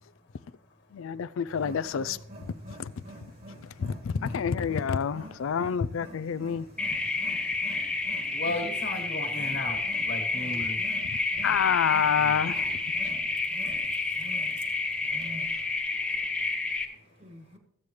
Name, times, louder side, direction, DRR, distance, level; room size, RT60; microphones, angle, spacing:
voice 1, 0.9-2.2 2.7-2.9 3.8-6.7 10.6-10.7 11.0-12.8, left 7 dB, 80° left, 0.4 m, -28 dB
Wild animals, 1.5-15.8, equal, 50° right, 2.4 m, -47 dB
voice 2, 4.1-4.6 8.3-10.8 12.2-12.4, left 2 dB, 60° left, 1.8 m, -35 dB
sound 1, 6.8-16.8, left 3 dB, 5° left, 0.9 m, -30 dB
voice 3, 10.5-11.0 15.2-17.6, equal, 30° right, 1.5 m, -56 dB
15.0 x 8.5 x 3.2 m
head